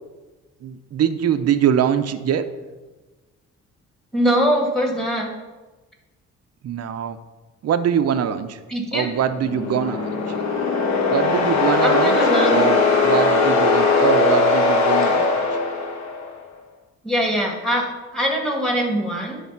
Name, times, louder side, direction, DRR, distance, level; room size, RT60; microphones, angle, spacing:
voice 1, 0.6-2.4 6.6-7.2 7.6-8.6 8.9-10.1 11.1-15.4, right 8 dB, 55° right, 9 dB, 0.7 m, -23 dB
voice 2, 4.1-5.3 8.7-9.1 11.8-12.6 17.0-17.9 18.1-19.4, equal, ahead, 0 dB, 2.3 m, -22 dB
sound 1, 9.3-16.3, left 3 dB, 65° left, 1.3 m, -19 dB
10.5 x 3.6 x 5.9 m, 1.2 s
cardioid pair, 90°, 30 cm